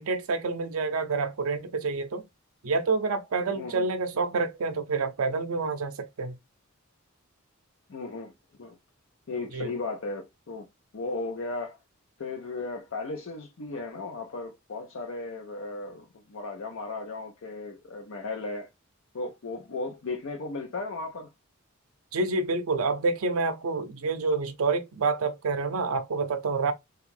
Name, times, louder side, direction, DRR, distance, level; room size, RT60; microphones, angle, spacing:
voice 1, 0.0-2.2 2.6-6.4 9.5-9.7 22.1-26.7, right 4 dB, 75° right, 0.5 m, -28 dB
voice 2, 3.6-3.9 7.9-8.3 8.6-8.8 9.3-10.7 10.9-11.8 12.2-18.7 19.1-21.3, left 3 dB, 60° left, 0.6 m, -36 dB
3.5 x 2.4 x 3.1 m
head